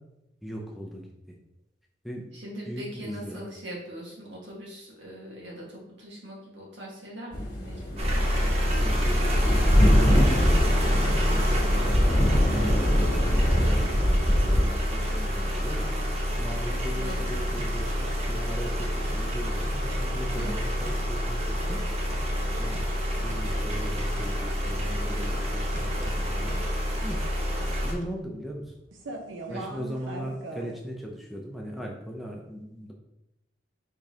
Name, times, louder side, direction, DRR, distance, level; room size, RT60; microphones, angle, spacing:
voice 1, 0.4-1.4 2.0-2.3 2.7-3.4 8.4-11.1 11.3-15.9 16.4-21.8 22.6-22.8 23.2-26.6 27.0-27.2 27.8-28.7 29.5-32.9, equal, ahead, -1 dB, 0.5 m, -38 dB
voice 2, 2.3-8.0 11.6-11.9 17.0-17.2 20.4-20.5 29.5-29.7, equal, 65° right, -4 dB, 1.5 m, -41 dB
sound 1, 7.3-14.6, equal, 50° left, 1.3 m, -24 dB
sound 2, 8.0-27.9, equal, 35° right, 0.9 m, -27 dB
sound 3, 13.9-14.2 14.6-15.5 16.0-30.7, right 2 dB, 90° right, 0.7 m, -44 dB
5.0 x 3.6 x 2.7 m, 0.88 s
head